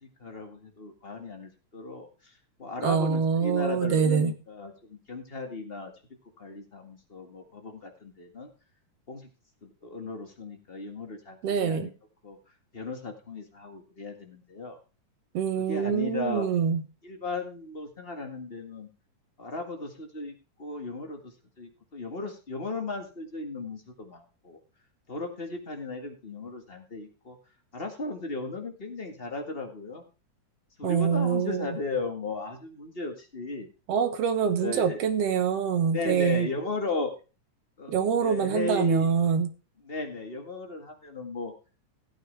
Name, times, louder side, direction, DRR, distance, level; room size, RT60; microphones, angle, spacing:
voice 1, 0.0-2.3 2.6-5.9 6.4-8.5 9.1-9.3 9.6-11.9 12.2-12.4 12.7-14.8 15.6-16.5 17.0-18.9 19.4-21.3 21.6-24.6 25.1-27.4 27.7-30.0 30.8-33.7 34.6-35.0 35.9-37.1 37.8-39.1 39.8-41.5, left 3 dB, 25° left, 4 dB, 1.6 m, -36 dB
voice 2, 2.8-4.3 11.4-11.9 15.3-16.8 30.8-31.7 33.9-36.5 37.9-39.5, right 7 dB, 65° right, 9 dB, 2.1 m, -25 dB
15.5 x 8.7 x 3.4 m, 0.33 s
omnidirectional pair, 3.3 m